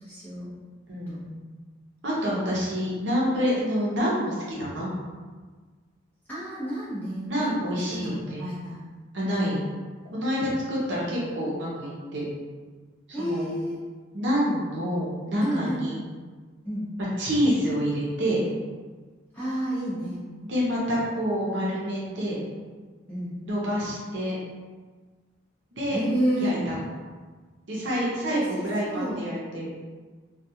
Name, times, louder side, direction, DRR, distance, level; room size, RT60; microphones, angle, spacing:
voice 1, 0.0-0.5 1.1-1.2 2.2-2.3 6.3-7.5 7.9-8.8 9.3-9.6 10.9-11.1 13.1-13.8 15.4-15.9 16.6-16.9 19.3-20.2 23.1-23.3 25.9-26.6 28.3-29.2, right 1 dB, 10° left, -11 dB, 0.7 m, -30 dB
voice 2, 0.9-1.3 2.0-4.9 7.3-8.4 9.1-9.7 10.1-12.2 13.2-13.5 14.1-16.0 17.0-18.4 20.5-22.4 23.4-24.4 25.7-26.0 26.4-26.8 27.7-29.7, equal, 65° right, -6 dB, 0.7 m, -27 dB
2.3 x 2.2 x 2.7 m, 1.4 s
head